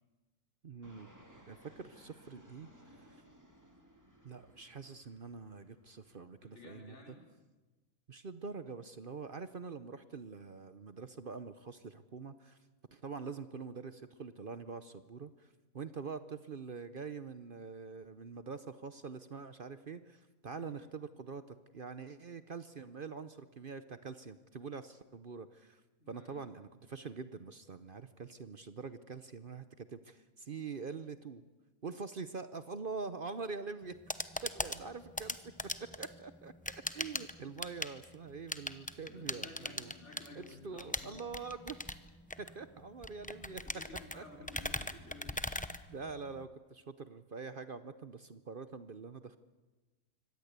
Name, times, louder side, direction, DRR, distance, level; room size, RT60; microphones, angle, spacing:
voice 1, 0.6-1.1 1.5-3.2 4.2-7.1 8.1-12.6 12.9-25.8 26.1-31.4 31.8-33.9 34.4-35.5 35.8-39.9 40.4-41.8 42.4-43.6 44.1-44.2 45.9-49.4, right 5 dB, 45° right, 12 dB, 0.9 m, -45 dB
Fixed-wing aircraft airplane, 0.8-6.2, equal, 10° right, 2.7 m, -61 dB
voice 2, 6.4-7.2 20.5-20.8 26.0-26.5 34.5-34.6 39.0-41.2 43.6-45.4, left 3 dB, 55° left, 1 dB, 4.9 m, -54 dB
sound 1, 33.8-46.5, left 1 dB, 10° left, 0.6 m, -41 dB
24.5 x 18.0 x 8.2 m, 1.2 s
omnidirectional pair, 1.5 m